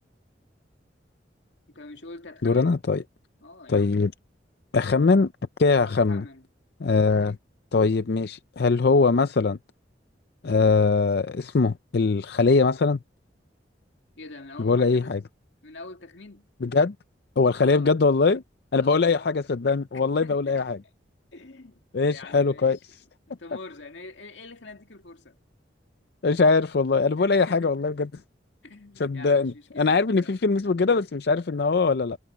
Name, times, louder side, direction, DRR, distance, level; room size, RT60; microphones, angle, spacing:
voice 1, 1.7-2.8 3.4-4.0 5.7-6.5 7.2-7.4 14.2-15.2 15.6-16.5 17.5-18.0 18.8-19.3 19.9-20.7 21.3-22.8 23.3-25.4 27.2-27.7 28.6-30.4, left 3 dB, 85° left, 2.2 m, -44 dB
voice 2, 2.4-3.0 3.7-4.1 4.7-5.3 5.6-6.2 6.8-7.4 7.7-9.6 10.4-13.0 14.6-15.2 16.6-16.9 17.4-18.4 18.7-20.8 21.9-23.0 26.2-28.1 29.0-32.2, left 4 dB, 60° left, 0.5 m, -22 dB
head